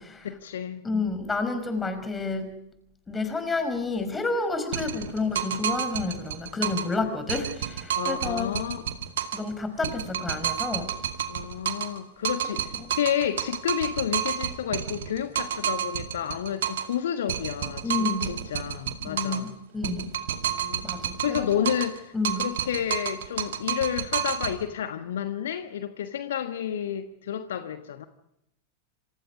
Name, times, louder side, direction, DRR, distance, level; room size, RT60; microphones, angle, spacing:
voice 1, 0.2-0.8 7.9-8.8 11.3-19.5 20.4-20.9 21.2-28.1, left 9 dB, 60° left, 9 dB, 1.4 m, -30 dB
voice 2, 0.8-2.5 3.1-8.6 9.3-10.9 12.8-12.9 17.8-18.3 19.0-19.5 19.7-20.1 20.8-21.7 22.1-22.5, left 3 dB, 15° left, 9 dB, 5.1 m, -30 dB
sound 1, 4.7-7.0 7.3-9.5 9.8-12.0 12.2-17.0 17.3-19.5 19.8-22.0 22.2-24.6, right 10 dB, 60° right, 2.0 m, -30 dB
27.5 x 27.5 x 5.1 m, 0.80 s
figure-of-eight pair, 90°, 0 cm